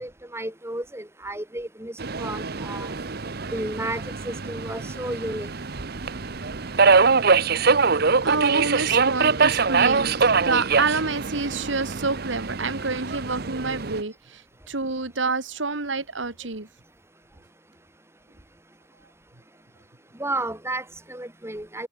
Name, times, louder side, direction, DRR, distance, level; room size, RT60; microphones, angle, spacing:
voice 1, 0.0-2.9 3.5-5.5 20.2-21.9, right 1 dB, 15° right, 3.3 m, -32 dB
Subway metro underground, 2.0-14.0, right 4 dB, 55° right, 1.0 m, -23 dB
voice 2, 8.2-16.7, right 3 dB, 75° right, 2.1 m, -28 dB
head